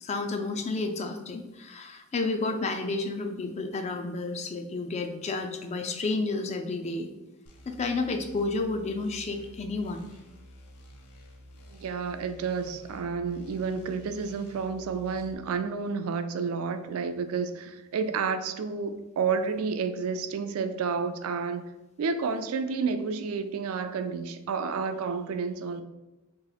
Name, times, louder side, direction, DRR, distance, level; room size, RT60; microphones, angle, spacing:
voice 1, 0.0-7.1 7.7-10.1, left 3 dB, 30° left, 6 dB, 0.3 m, -31 dB
sound 1, 7.5-15.3, equal, 90° left, 0.6 m, -51 dB
voice 2, 11.7-21.6 22.0-25.8, right 5 dB, 70° right, 9 dB, 0.3 m, -30 dB
3.0 x 2.8 x 3.9 m, 1.0 s
head